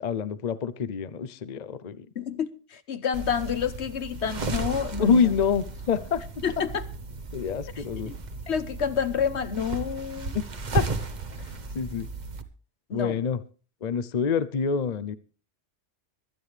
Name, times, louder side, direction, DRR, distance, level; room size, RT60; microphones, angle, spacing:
voice 1, 0.0-2.1 5.0-6.2 7.3-8.1 10.3-10.4 10.7-10.9 11.7-12.1 12.9-13.4 13.8-15.1, left 6 dB, 45° left, 0.7 m, -26 dB
voice 2, 2.1-5.3 6.4-6.8 8.1-8.2 8.5-10.4 12.9-13.2, left 7 dB, 70° left, 1.3 m, -29 dB
sound 1, 3.1-12.4, right 3 dB, 40° right, 1.2 m, -35 dB
24.5 x 9.2 x 3.3 m
omnidirectional pair, 1.2 m